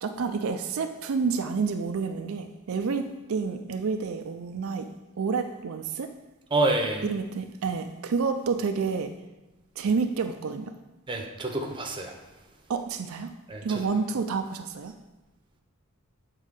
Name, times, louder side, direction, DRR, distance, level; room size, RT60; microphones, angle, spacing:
voice 1, 0.0-3.0 3.3-4.9 5.2-6.1 7.0-9.1 9.8-10.7 12.7-13.3 13.6-14.9, right 5 dB, 75° right, 7 dB, 0.4 m, -29 dB
voice 2, 6.5-7.0 11.1-12.1 13.5-13.8, right 2 dB, 20° right, 2 dB, 0.7 m, -27 dB
7.3 x 3.7 x 5.2 m, 1.1 s
head